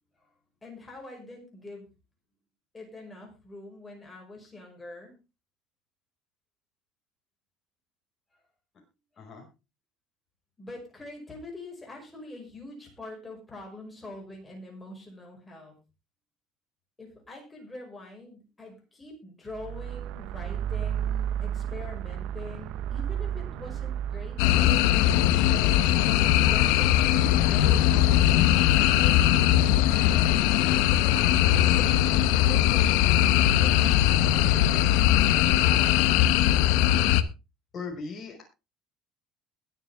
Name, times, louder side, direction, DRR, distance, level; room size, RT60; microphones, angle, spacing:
voice 1, 0.6-1.9 2.7-5.1 10.6-15.7 17.0-24.9 25.3-25.8 26.3-30.3 31.0-35.6, left 2 dB, 10° left, 0 dB, 5.4 m, -44 dB
sound 1, 19.5-27.8, right 10 dB, 60° right, 0.8 m, -34 dB
sound 2, 24.4-37.2, left 12 dB, 90° left, 1.0 m, -21 dB
voice 2, 37.7-38.4, left 4 dB, 30° left, 1 dB, 5.7 m, -38 dB
21.5 x 7.3 x 3.6 m, 0.29 s
cardioid pair, 170°, 0 cm